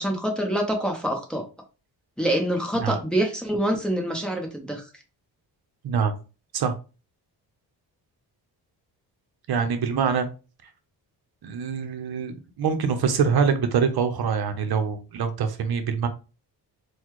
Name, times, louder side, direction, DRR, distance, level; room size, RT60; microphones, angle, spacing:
voice 1, 0.0-1.4 2.2-4.9, right 1 dB, ahead, 1 dB, 0.9 m, -26 dB
voice 2, 5.8-6.2 6.5-6.7 9.5-10.3 11.4-16.1, right 6 dB, 60° right, 8 dB, 0.8 m, -24 dB
4.1 x 2.3 x 3.0 m, 0.33 s
cardioid pair, 100°, 42 cm